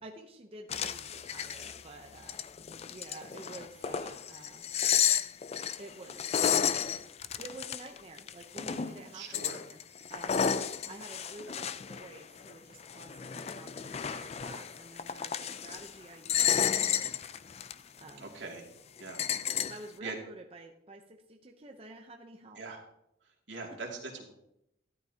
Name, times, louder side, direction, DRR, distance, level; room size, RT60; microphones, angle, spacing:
voice 1, 0.0-2.4 2.9-4.7 5.8-6.6 7.4-9.8 10.1-10.5 10.9-17.1 18.0-18.4 19.6-22.6 23.7-23.8, right 2 dB, 30° right, 2 dB, 0.7 m, -50 dB
sound 1, 0.7-1.8 2.2-9.0 9.3-12.5 12.8-15.9 16.2-17.7 18.1-18.2 19.0-19.8, left 8 dB, 35° left, 0.4 m, -32 dB
voice 2, 9.1-9.6 18.2-18.6 19.0-19.7 20.0-20.1 22.6-22.8 23.5-24.3, right 3 dB, 80° right, -1 dB, 2.5 m, -42 dB
12.5 x 11.5 x 2.8 m, 0.79 s
head